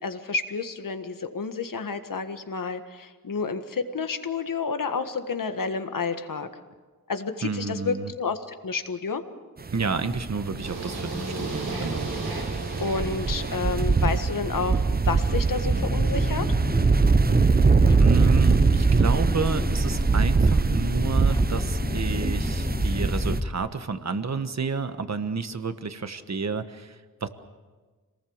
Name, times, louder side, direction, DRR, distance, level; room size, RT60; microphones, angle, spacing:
voice 1, 0.0-6.5 7.1-9.2 12.8-16.5, left 5 dB, 70° left, 8 dB, 1.7 m, -30 dB
voice 2, 7.4-8.1 9.7-12.2 18.0-27.3, right 4 dB, 50° right, 10 dB, 1.4 m, -30 dB
sound 1, 9.7-23.4, right 4 dB, 25° right, 0.7 m, -23 dB
sound 2, 10.6-14.7, right 2 dB, 85° right, 6.1 m, -36 dB
sound 3, 15.6-23.5, left 1 dB, 10° left, 1.3 m, -29 dB
26.5 x 19.0 x 7.2 m, 1.4 s
wide cardioid pair, 90°, 34 cm